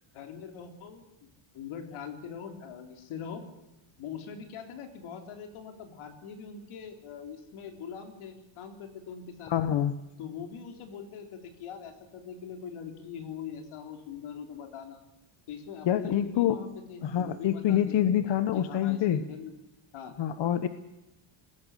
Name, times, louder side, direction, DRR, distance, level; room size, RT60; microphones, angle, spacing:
voice 1, 0.1-1.1 1.5-3.4 4.0-9.5 10.2-15.0 15.5-18.1 18.5-19.5 19.9-20.1, left 7 dB, 80° left, 6 dB, 3.8 m, -42 dB
voice 2, 9.5-9.9 15.8-16.6 17.0-19.2 20.2-20.7, left 10 dB, 60° left, 12 dB, 1.2 m, -26 dB
21.5 x 16.0 x 8.3 m, 0.98 s
cardioid pair, 160°, 49 cm